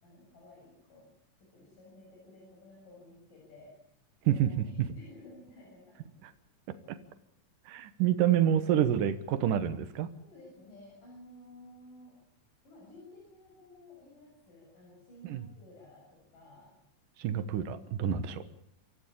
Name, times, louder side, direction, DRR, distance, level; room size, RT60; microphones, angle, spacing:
voice 1, 0.0-1.1 1.4-3.7 4.2-6.2 10.2-12.2 12.6-16.8 18.1-18.4, left 1 dB, 90° left, -3 dB, 8.7 m, -54 dB
voice 2, 4.3-4.9 6.2-6.3 6.9-7.0 7.7-10.1 15.2-15.4 17.2-18.4, right 10 dB, 85° right, 11 dB, 2.8 m, -28 dB
25.5 x 15.5 x 8.6 m, 0.68 s
omnidirectional pair, 3.7 m